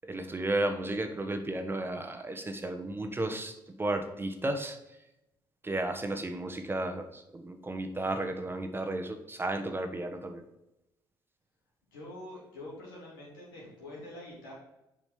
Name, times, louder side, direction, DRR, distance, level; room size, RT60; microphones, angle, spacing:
voice 1, 0.1-4.8 5.6-10.4, right 2 dB, 20° right, 6 dB, 1.1 m, -33 dB
voice 2, 11.9-14.5, left 1 dB, 85° left, -5 dB, 2.9 m, -45 dB
7.3 x 5.0 x 5.3 m, 0.90 s
hypercardioid pair, 50°, 11 cm